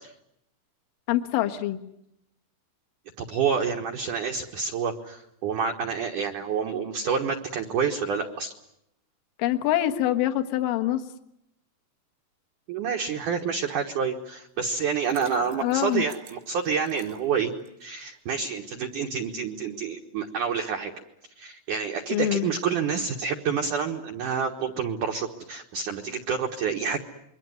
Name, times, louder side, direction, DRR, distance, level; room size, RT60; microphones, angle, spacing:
voice 1, 1.1-1.8 9.4-11.0 15.3-16.1 22.1-22.5, left 13 dB, 60° left, 7 dB, 2.5 m, -25 dB
voice 2, 3.2-8.5 12.7-17.5 17.8-20.9 21.4-27.0, right 6 dB, 70° right, 3 dB, 1.9 m, -28 dB
Liquid, 14.8-17.9, right 8 dB, 90° right, 4.9 m, -48 dB
27.0 x 23.0 x 9.4 m, 0.79 s
omnidirectional pair, 5.6 m